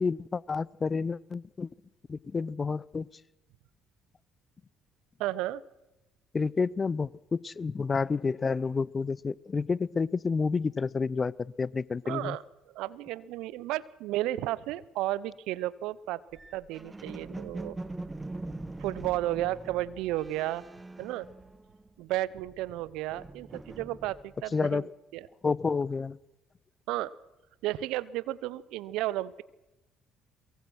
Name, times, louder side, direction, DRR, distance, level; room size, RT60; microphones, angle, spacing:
voice 1, 0.0-1.7 2.1-3.1 6.3-12.4 24.5-24.9 25.4-26.2, left 4 dB, 35° left, 23 dB, 0.7 m, -29 dB
voice 2, 5.2-5.6 12.0-12.4 12.7-16.2 16.5-17.8 18.8-20.6 21.0-21.3 22.0-24.9 25.1-25.3 26.9-27.1 27.6-29.4, right 15 dB, 70° right, 19 dB, 0.8 m, -33 dB
sound 1, 16.3-21.9 22.2-24.5, right 2 dB, 20° right, 1.5 m, -43 dB
23.0 x 23.0 x 6.3 m, 0.97 s
hypercardioid pair, 55°, 0 cm